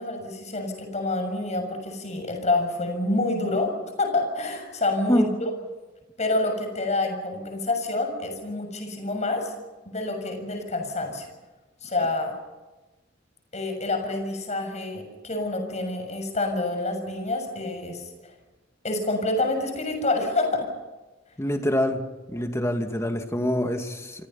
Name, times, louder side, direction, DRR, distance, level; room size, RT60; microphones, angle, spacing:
voice 1, 0.0-3.7 4.0-5.5 6.2-9.5 9.8-11.3 11.8-12.3 13.5-18.3 18.8-20.7, left 2 dB, 35° left, 5 dB, 6.8 m, -27 dB
voice 2, 21.4-22.0 22.3-24.3, left 1 dB, 15° left, 5 dB, 2.3 m, -25 dB
28.5 x 25.0 x 5.7 m, 1.2 s
head